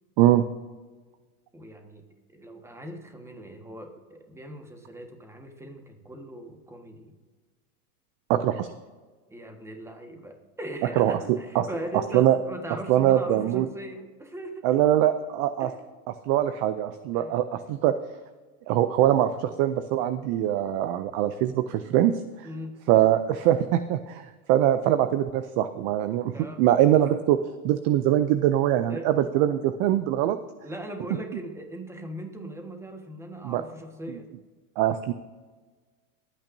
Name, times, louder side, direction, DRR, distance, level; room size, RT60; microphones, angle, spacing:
voice 1, 1.5-7.1 9.3-14.7 15.6-15.8 17.1-17.4 22.4-22.8 26.3-26.6 28.9-29.1 30.6-34.3, right 1 dB, 5° right, 4 dB, 1.4 m, -40 dB
voice 2, 8.3-8.7 11.0-11.2 11.5-11.7 12.1-12.4 12.9-13.7 14.6-15.7 16.3-17.9 18.7-22.5 22.9-27.4 27.6-30.4 33.4-33.6 34.8-35.1, right 12 dB, 35° right, 11 dB, 0.4 m, -23 dB
20.5 x 9.0 x 2.7 m, 1.4 s
supercardioid pair, 130°, 45 cm